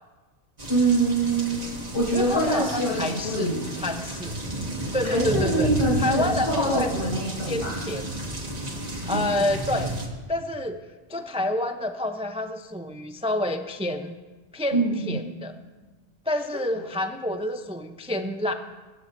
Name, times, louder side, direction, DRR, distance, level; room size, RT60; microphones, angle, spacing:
sound 1, 0.6-10.1, right 1 dB, 35° right, 1.7 m, -32 dB
voice 1, 0.7-1.6 1.9-3.6 5.0-7.8 9.0-9.2 14.7-15.2 16.5-16.6, right 2 dB, 75° left, -6 dB, 6.1 m, -25 dB
voice 2, 2.1-3.5 3.8-4.3 4.9-5.7 6.0-7.1 7.5-8.0 9.1-9.9 10.3-10.8 11.1-14.2 14.5-15.5 16.3-18.5, left 1 dB, 10° right, 7 dB, 0.4 m, -28 dB
24.0 x 13.0 x 2.6 m, 1.3 s
omnidirectional pair, 1.2 m